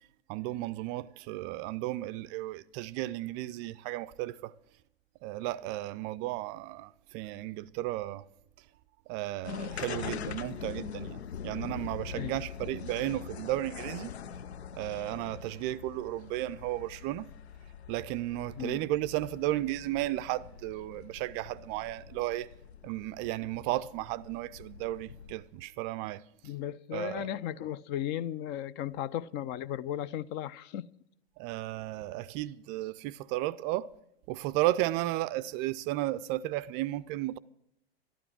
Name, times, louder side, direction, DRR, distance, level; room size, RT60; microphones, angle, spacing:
voice 1, 0.3-4.5 5.2-8.2 9.1-11.2 11.4-14.1 14.8-17.3 17.9-22.5 22.8-26.2 26.9-27.3 31.4-33.9 34.3-37.4, right 16 dB, 35° right, 0.4 m, -34 dB
sound 1, 9.4-25.6, left 8 dB, 90° left, 0.5 m, -43 dB
voice 2, 18.6-18.9 26.4-30.9, left 11 dB, 35° left, 0.4 m, -36 dB
12.5 x 12.0 x 5.9 m
hypercardioid pair, 100°, 32 cm